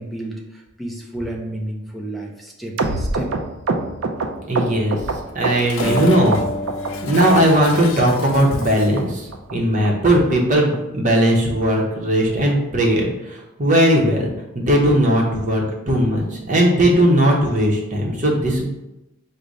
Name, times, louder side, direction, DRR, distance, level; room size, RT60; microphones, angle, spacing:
voice 1, 0.0-3.3, right 1 dB, ahead, -2 dB, 0.5 m, -31 dB
sound 1, 2.8-6.0 6.3-6.9 7.2-7.8 8.1-8.2 8.4-8.7 9.0-9.1 9.3-9.5 9.8-9.9 10.2-10.4 10.7-10.8 11.1-11.3 11.6-11.7 12.0-12.2 12.5-12.6, right 3 dB, 65° right, 0.4 m, -25 dB
voice 2, 4.5-6.4 6.9-14.3 14.5-18.7, right 1 dB, 35° right, -1 dB, 0.7 m, -18 dB
Dishes pots and pans, 5.3-9.1, left 5 dB, 60° left, 0.4 m, -36 dB
Acoustic guitar, 5.8-10.3, left 1 dB, 25° left, 1.2 m, -31 dB
4.9 x 2.1 x 4.0 m, 0.95 s
head